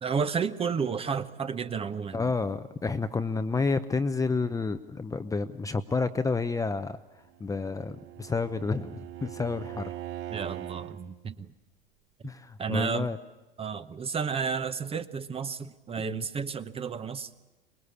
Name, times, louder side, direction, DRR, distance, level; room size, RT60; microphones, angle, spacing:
voice 1, 0.0-2.3 10.3-11.5 12.6-13.1 13.6-17.3, right 6 dB, 20° right, 12 dB, 1.0 m, -32 dB
voice 2, 2.1-7.0 7.4-9.9 12.2-13.2 16.0-16.2, left 4 dB, 10° left, 9 dB, 0.8 m, -30 dB
Bowed string instrument, 7.3-11.0, right 13 dB, 45° right, 5.0 m, -41 dB
25.0 x 21.0 x 8.5 m, 1.1 s
hypercardioid pair, 90°, 29 cm